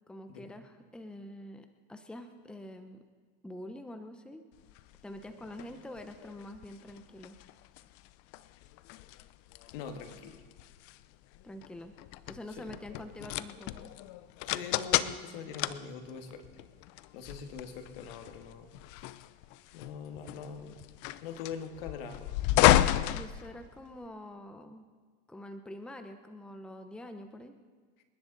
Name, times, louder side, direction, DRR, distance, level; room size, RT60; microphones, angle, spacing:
voice 1, 0.1-3.0 3.4-4.4 5.0-7.4 11.4-11.9 12.3-13.9 23.1-24.9 25.3-27.5, left 1 dB, 5° left, 7 dB, 0.8 m, -46 dB
sound 1, 4.7-24.1, left 15 dB, 55° left, 0.6 m, -33 dB
voice 2, 9.7-10.4 12.6-12.7 14.5-16.4 17.1-18.7 19.0-19.1 19.7-20.8 21.2-22.3, left 6 dB, 75° left, 6 dB, 1.9 m, -43 dB
27.5 x 11.0 x 4.0 m, 1.5 s
supercardioid pair, 130°, 29 cm